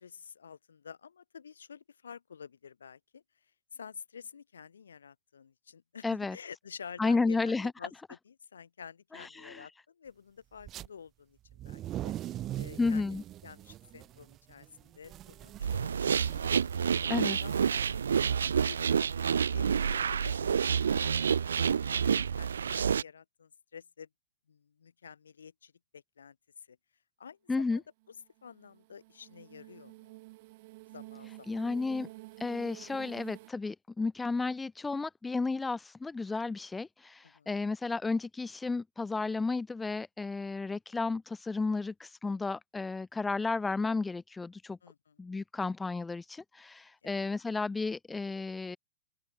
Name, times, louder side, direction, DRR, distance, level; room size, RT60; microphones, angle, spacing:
voice 1, 0.0-3.2 3.7-12.1 12.6-13.0 13.4-16.2 16.8-18.4 18.7-19.0 19.5-24.1 24.5-26.8 27.2-28.2 28.4-30.1 30.9-31.6 37.2-37.5 44.8-45.2 47.0-47.3, left 7 dB, 75° left, 3.7 m, -50 dB
voice 2, 6.0-6.4 7.0-7.7 9.1-9.7 12.8-13.2 17.1-17.4 27.5-27.8 31.5-32.1 32.4-44.8 45.2-48.8, left 3 dB, 10° left, 1.1 m, -32 dB
sound 1, 10.6-10.9 11.5-20.0, right 13 dB, 30° right, 4.3 m, -43 dB
sound 2, 15.6-23.0, right 7 dB, 75° right, 0.8 m, -28 dB
sound 3, 28.0-33.5, right 22 dB, 50° right, 2.0 m, -50 dB
open air
hypercardioid pair, 110°, 0 cm